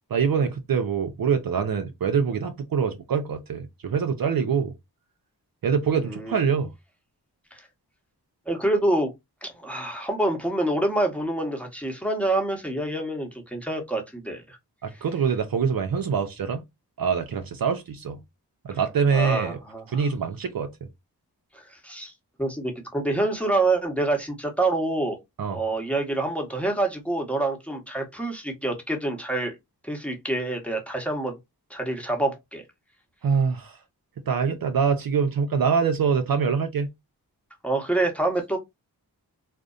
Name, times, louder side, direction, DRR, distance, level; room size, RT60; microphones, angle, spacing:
voice 1, 0.1-4.7 5.6-6.7 14.8-16.6 17.0-18.2 18.6-19.6 19.9-20.9 25.4-25.6 33.2-33.8 34.3-36.9, right 6 dB, 60° right, 0.5 m, -24 dB
voice 2, 6.0-6.4 7.5-7.6 8.5-9.1 9.4-14.6 19.1-20.0 21.5-22.1 22.4-25.2 25.5-29.6 29.8-31.4 31.7-32.6 37.6-38.6, right 2 dB, 5° left, 1.0 m, -27 dB
2.5 x 2.1 x 2.4 m
cardioid pair, 40°, 40 cm